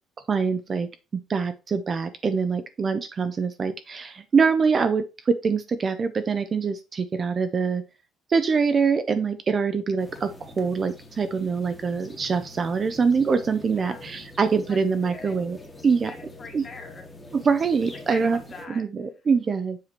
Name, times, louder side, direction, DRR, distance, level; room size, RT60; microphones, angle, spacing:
voice 1, 0.3-0.9 1.3-7.8 8.3-15.6 15.8-16.1 16.5-16.6 17.3-18.4 18.7-19.8, right 5 dB, 25° right, 10 dB, 0.4 m, -24 dB
sound 1, 10.0-18.7, left 2 dB, 10° left, 1.2 m, -45 dB
voice 2, 16.0-17.1 18.1-18.8, left 4 dB, 30° left, 2 dB, 1.6 m, -42 dB
7.4 x 4.7 x 3.0 m, 0.28 s
cardioid pair, 160°, 0 cm